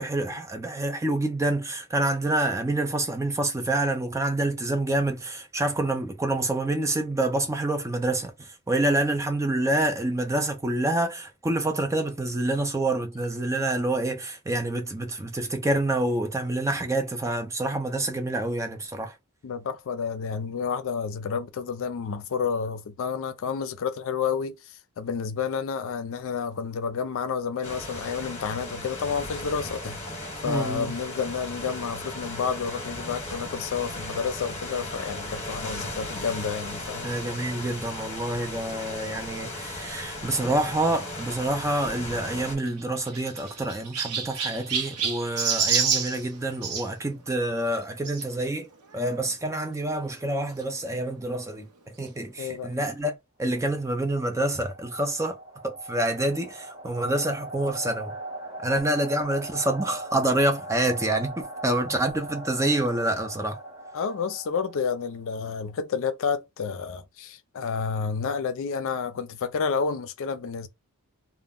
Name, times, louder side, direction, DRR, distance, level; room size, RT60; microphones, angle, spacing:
voice 1, 0.0-19.1 30.4-30.9 37.0-48.7 48.9-51.7 52.0-53.1 53.4-55.4 55.6-58.1 58.6-63.6, right 1 dB, 15° right, 0.4 m, -27 dB
voice 2, 19.4-30.0 30.4-37.1 52.4-52.7 63.9-70.7, left 6 dB, 60° left, 0.4 m, -30 dB
sound 1, 27.6-42.6, left 2 dB, 30° left, 0.9 m, -36 dB
Chirp tweet, 42.6-46.9 48.0-48.2 48.9-49.0 49.2-49.3 50.6-50.7, right 6 dB, 90° right, 0.7 m, -28 dB
sound 2, 54.2-65.1, right 1 dB, 65° right, 1.0 m, -39 dB
2.2 x 2.0 x 3.5 m
head